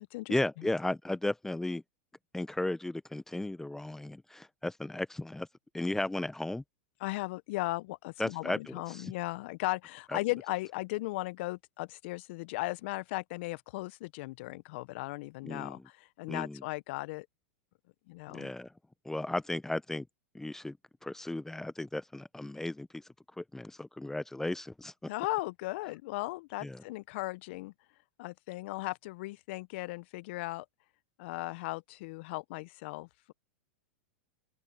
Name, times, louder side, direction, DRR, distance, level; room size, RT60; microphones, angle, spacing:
voice 1, 0.3-1.8 2.3-5.5 5.7-6.6 8.2-9.1 10.1-10.2 15.4-15.8 16.3-16.6 18.3-18.7 19.0-20.1 20.3-20.8 21.0-23.1 23.4-24.9 26.6-26.8, left 2 dB, 5° left, 0.7 m, -35 dB
voice 2, 7.0-17.3 18.1-18.5 25.1-27.7 28.2-30.7 31.2-33.3, left 21 dB, 60° left, 0.7 m, -37 dB
open air
hypercardioid pair, 110°, 7 cm